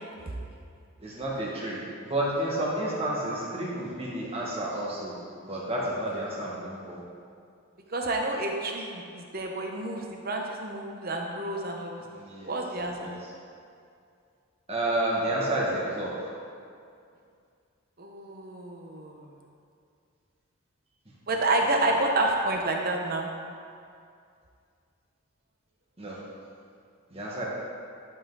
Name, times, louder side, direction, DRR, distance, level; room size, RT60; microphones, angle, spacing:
voice 1, 1.0-1.8 2.0-5.1 5.4-7.0 12.1-12.5 13.0-13.3 14.7-16.3 26.0-26.2 27.1-27.4, right 1 dB, 30° right, -5 dB, 1.6 m, -30 dB
voice 2, 7.9-12.0 12.4-13.1 18.0-19.2 21.3-23.3, right 2 dB, 45° right, 1 dB, 0.9 m, -29 dB
11.5 x 5.6 x 4.0 m, 2.4 s
head